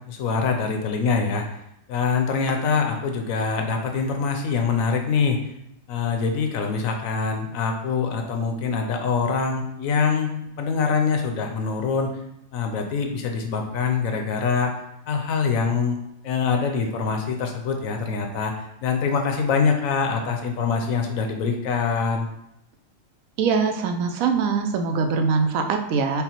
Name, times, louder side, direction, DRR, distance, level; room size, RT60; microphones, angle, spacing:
voice 1, 0.1-1.4 1.9-5.4 5.9-12.1 12.5-14.7 15.1-16.0 16.2-22.3, left 5 dB, 80° left, 3 dB, 1.1 m, -24 dB
voice 2, 23.4-26.2, right 5 dB, 90° right, 6 dB, 1.0 m, -22 dB
5.5 x 2.1 x 4.4 m, 0.81 s
omnidirectional pair, 1.4 m